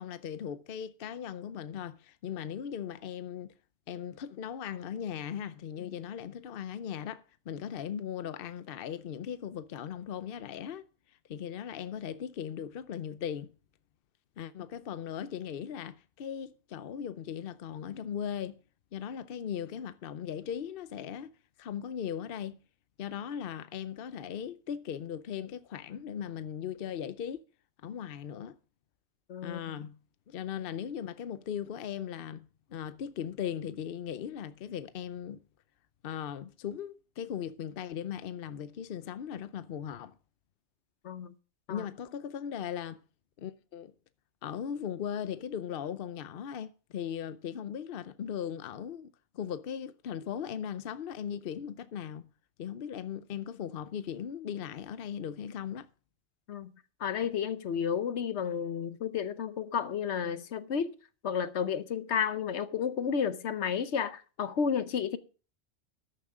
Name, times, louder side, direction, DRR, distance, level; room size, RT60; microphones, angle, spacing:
voice 1, 0.0-3.5 3.9-10.9 11.3-13.5 14.4-18.6 18.9-21.3 21.6-22.6 23.0-27.4 27.8-28.6 29.4-30.0 30.3-35.4 36.0-40.2 41.7-43.0 43.4-43.9 44.4-52.3 52.6-55.9, left 8 dB, 60° left, 0.8 m, -38 dB
voice 2, 29.3-29.8 41.0-41.3 41.7-41.9 56.5-56.7 57.0-60.9 61.2-65.2, left 7 dB, 75° left, 1.1 m, -32 dB
13.0 x 10.0 x 3.6 m
omnidirectional pair, 1.2 m